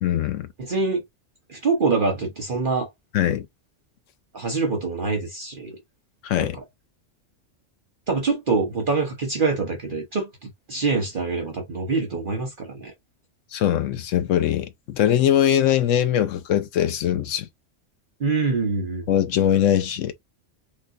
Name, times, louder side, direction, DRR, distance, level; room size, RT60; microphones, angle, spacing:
voice 1, 0.0-0.5 3.1-3.5 6.2-6.6 13.5-17.5 19.1-20.1, left 10 dB, 90° left, 1.0 m, -21 dB
voice 2, 0.6-1.0 1.5-2.9 4.3-5.8 6.4-6.6 8.1-12.9 18.2-19.0, right 4 dB, 45° right, 1.0 m, -25 dB
3.6 x 2.7 x 2.4 m
omnidirectional pair, 1.3 m